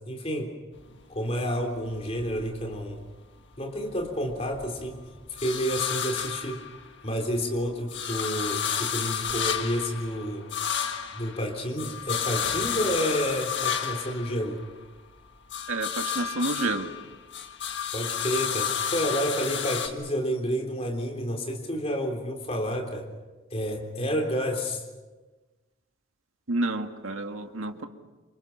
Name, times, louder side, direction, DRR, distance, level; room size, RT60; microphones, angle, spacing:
voice 1, 0.1-0.5 1.1-3.0 3.6-5.0 5.3-6.6 7.0-10.4 11.1-14.6 17.9-23.1 23.5-24.8, equal, 30° left, 1 dB, 3.5 m, -30 dB
sound 1, 0.8-3.2 3.5-7.2 7.6-15.0 15.3-19.9, left 8 dB, 60° left, 1.8 m, -32 dB
voice 2, 15.7-16.9 26.5-27.9, right 2 dB, 90° right, 5 dB, 1.9 m, -29 dB
28.0 x 26.0 x 5.9 m, 1.2 s
head